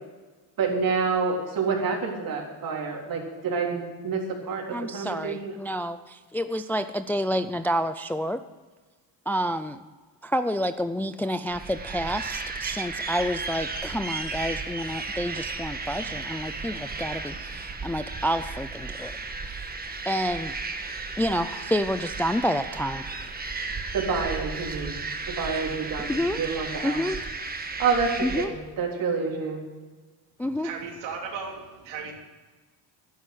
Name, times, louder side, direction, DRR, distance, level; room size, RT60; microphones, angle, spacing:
voice 1, 0.6-4.2 4.5-5.5 23.9-25.0 25.3-26.1 26.4-27.0 27.8-29.6, right 5 dB, 50° right, 0 dB, 3.8 m, -28 dB
voice 2, 4.7-8.4 9.3-9.8 10.2-19.1 19.5-19.7 20.1-20.6 21.2-23.0 26.0-26.4 26.8-27.2 28.2-28.5 30.4-30.7, equal, 5° left, 10 dB, 0.3 m, -29 dB
sound 1, 11.5-28.5, right 3 dB, 20° right, 1.5 m, -34 dB
voice 3, 30.6-32.1, right 5 dB, 80° right, 0 dB, 3.2 m, -36 dB
12.0 x 10.5 x 7.9 m, 1.3 s
cardioid pair, 120°, 43 cm